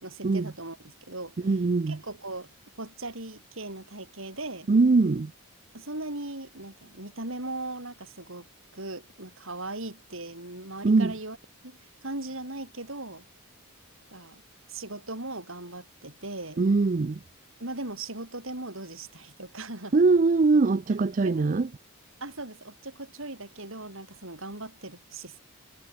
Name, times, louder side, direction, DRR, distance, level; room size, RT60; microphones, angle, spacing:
voice 1, 0.0-1.3 1.9-2.5 2.8-4.7 5.7-8.5 8.7-11.4 11.6-13.2 14.1-14.4 14.7-16.6 17.6-19.9 21.2-21.5 22.2-25.4, right 2 dB, 60° right, 5.4 m, -38 dB
voice 2, 1.4-2.0 4.7-5.3 10.8-11.1 16.6-17.2 19.9-21.7, right 3 dB, 35° right, 0.4 m, -22 dB
head